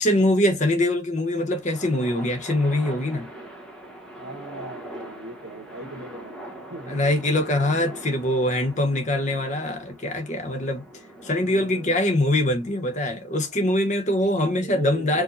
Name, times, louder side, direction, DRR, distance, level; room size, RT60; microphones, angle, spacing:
voice 1, 0.0-3.3 6.9-10.9 11.2-15.2, left 1 dB, 35° left, 1.0 m, -23 dB
sound 1, 1.2-14.6, right 1 dB, 5° left, 1.0 m, -43 dB
voice 2, 4.2-6.4 6.7-7.0 11.5-12.2 14.4-15.2, right 3 dB, 75° right, 1.3 m, -39 dB
4.8 x 2.5 x 2.6 m
head